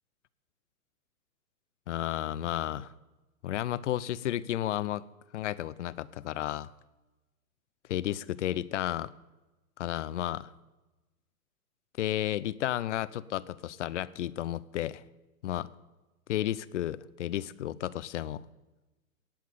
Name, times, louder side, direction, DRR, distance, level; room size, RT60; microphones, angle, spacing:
voice 1, 1.9-2.9 3.4-5.0 5.3-6.7 7.9-9.1 9.8-10.5 12.0-15.0 15.4-15.7 16.3-18.4, left 12 dB, 50° left, 19 dB, 0.7 m, -32 dB
18.0 x 7.5 x 8.4 m, 1.1 s
hypercardioid pair, 125°, 45 cm